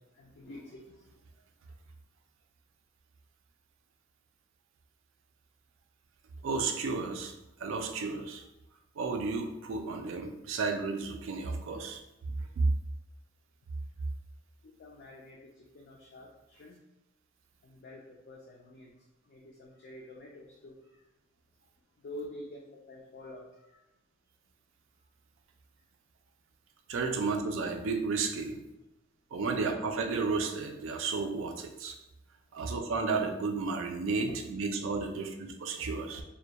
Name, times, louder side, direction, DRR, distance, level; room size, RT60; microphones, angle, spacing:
voice 1, 0.2-0.8 14.8-15.4 15.7-16.3 16.6-16.8 17.6-18.9 19.3-20.8 22.0-22.6 22.9-23.5, left 1 dB, 50° left, -2 dB, 0.3 m, -47 dB
voice 2, 6.4-7.3 7.6-8.4 9.0-12.0 12.6-12.7 26.9-28.6 29.3-32.0 32.5-36.2, right 4 dB, 75° right, 5 dB, 0.3 m, -32 dB
2.2 x 2.1 x 2.8 m, 0.93 s
head